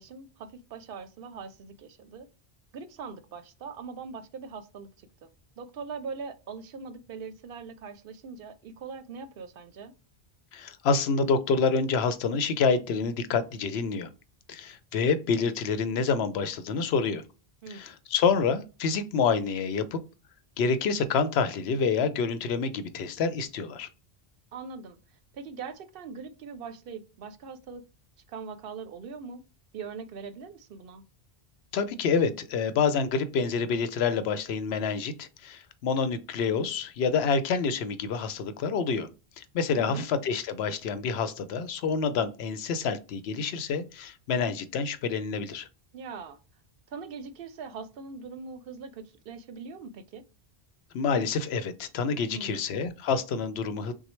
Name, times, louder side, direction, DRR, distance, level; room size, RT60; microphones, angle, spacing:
voice 1, 0.0-2.3 2.7-5.3 5.6-9.9 17.6-17.9 24.5-25.0 25.3-27.8 28.3-29.4 29.7-31.0 39.7-40.1 45.9-46.4 46.9-50.2 52.3-52.6, right 5 dB, 65° right, 0.7 m, -41 dB
voice 2, 10.5-14.1 14.5-17.2 17.7-20.0 20.6-23.9 31.7-39.1 39.4-45.7 50.9-53.9, left 5 dB, 80° left, 0.8 m, -27 dB
6.1 x 2.1 x 3.0 m
omnidirectional pair, 1.1 m